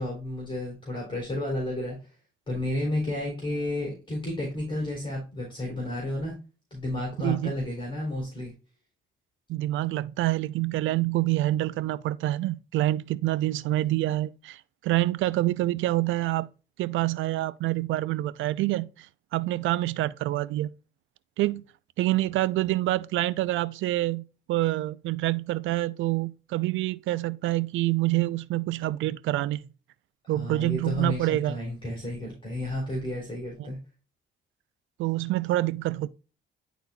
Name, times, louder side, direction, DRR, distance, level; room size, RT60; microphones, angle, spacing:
voice 1, 0.0-2.0 2.5-6.3 6.7-8.5 30.2-33.8, left 1 dB, 25° left, 3.5 m, -32 dB
voice 2, 7.2-7.5 9.5-16.5 16.8-19.1 19.3-20.7 21.4-21.6 22.0-29.6 30.3-31.6 33.6-33.7 35.0-36.1, right 16 dB, 80° right, 0.4 m, -27 dB
10.5 x 4.0 x 2.3 m
cardioid pair, 90°, 20 cm